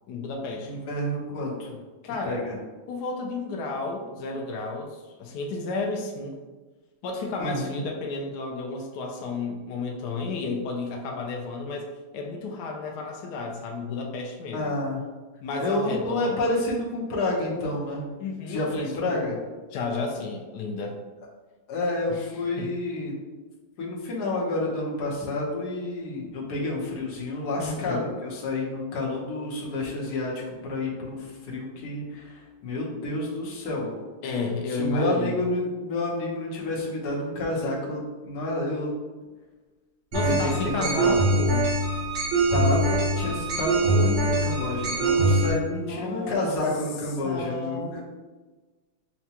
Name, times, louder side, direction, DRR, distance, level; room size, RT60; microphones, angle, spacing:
voice 1, 0.1-0.7 2.0-2.4 2.9-6.3 7.0-11.9 12.1-14.7 15.4-16.4 18.2-19.1 19.7-21.0 22.1-22.3 22.6-22.7 27.6-28.1 34.2-35.4 40.1-41.7 45.7-46.5 47.2-48.0, left 3 dB, 85° left, 1 dB, 0.8 m, -32 dB
voice 2, 0.6-1.8 2.2-2.5 7.4-7.8 14.5-15.0 15.6-18.1 18.5-19.4 21.7-23.1 23.8-33.9 34.7-38.9 40.2-41.2 42.5-48.0, left 2 dB, 60° left, -4 dB, 1.3 m, -29 dB
sound 1, 40.1-45.5, right 2 dB, 80° right, 2.3 m, -23 dB
5.8 x 2.2 x 2.8 m, 1.3 s
omnidirectional pair, 2.3 m